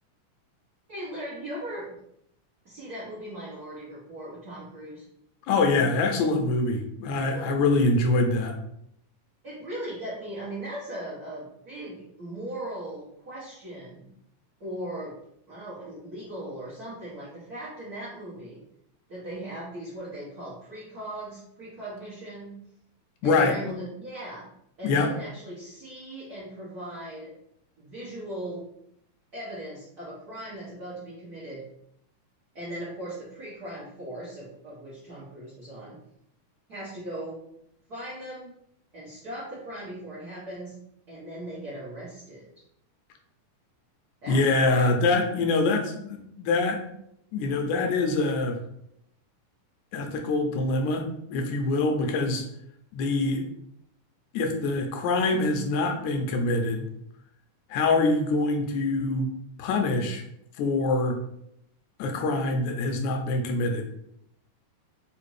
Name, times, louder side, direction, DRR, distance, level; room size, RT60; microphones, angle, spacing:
voice 1, 0.9-1.9 2.6-5.0 7.2-7.6 9.4-14.0 14.6-15.2 15.5-18.6 19.1-22.5 23.2-24.5 24.8-27.3 27.8-28.7 29.3-31.6 32.5-36.0 36.7-37.4 37.9-38.5 38.9-40.7 41.1-42.5 44.2-44.9, right 1 dB, 85° right, -9 dB, 0.8 m, -38 dB
voice 2, 5.5-8.6 23.2-23.8 24.8-25.1 44.3-46.8 47.3-48.6 49.9-52.4 52.9-53.4 54.3-56.9 57.7-59.3 59.6-60.2 60.6-61.2 62.0-63.9, left 3 dB, 80° left, 3 dB, 1.9 m, -24 dB
4.9 x 2.6 x 3.1 m, 0.75 s
omnidirectional pair, 3.6 m